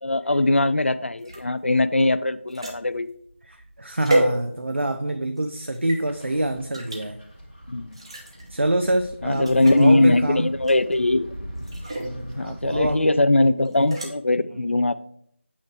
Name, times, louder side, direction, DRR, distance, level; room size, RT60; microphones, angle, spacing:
voice 1, 0.0-3.1 7.7-8.0 9.2-11.4 12.3-15.0, left 2 dB, 65° left, 14 dB, 0.4 m, -21 dB
sound 1, 1.2-4.9 5.4-6.0 6.7-7.0 7.9-8.5 8.9-9.0 9.3-9.8 10.6-11.0 11.6-12.1 13.6-14.1, right 1 dB, 25° right, 1.0 m, -29 dB
voice 2, 3.4-7.2 8.5-10.5 12.0-13.0 14.5-14.6, right 1 dB, 65° right, 6 dB, 0.5 m, -26 dB
sound 2, 6.1-12.9, equal, 15° left, 1.4 m, -41 dB
8.4 x 3.1 x 4.5 m, 0.68 s
figure-of-eight pair, 170°, 7 cm